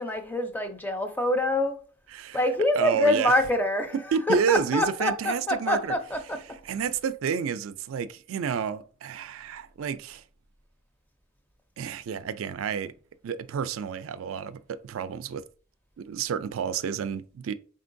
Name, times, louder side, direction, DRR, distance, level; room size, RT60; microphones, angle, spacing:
voice 1, 0.0-1.8 2.3-3.9 4.3-6.6, left 1 dB, 10° left, 0.5 m, -25 dB
voice 2, 2.8-3.3 4.1-5.9 6.7-10.2 11.8-12.9 13.2-15.4 16.0-17.5, right 7 dB, 80° right, 0.4 m, -30 dB
4.4 x 3.7 x 2.6 m
head